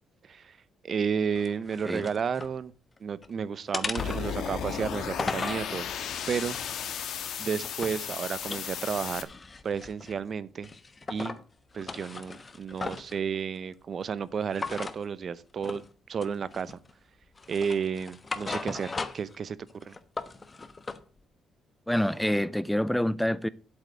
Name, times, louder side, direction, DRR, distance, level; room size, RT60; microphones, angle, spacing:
voice 1, 0.8-2.7 3.0-5.9 6.3-6.6 7.4-9.3 9.6-10.7 11.1-11.3 11.7-15.8 16.1-16.8 17.5-19.6 19.9-20.0, right 6 dB, 50° right, 0.8 m, -32 dB
sound 1, 1.4-2.5 3.0-3.3 3.7-5.7 6.3-8.1 8.4-10.2 10.6-11.4 11.7-13.2 14.5-15.0 15.6-15.9 16.2-16.9 17.4-19.4 19.7-21.0, left 3 dB, 30° left, 1.1 m, -38 dB
sound 2, 4.0-9.2, left 8 dB, 75° left, 1.6 m, -35 dB
voice 2, 21.9-23.5, equal, 5° left, 0.5 m, -27 dB
8.2 x 8.2 x 8.1 m
cardioid pair, 90°, 0 cm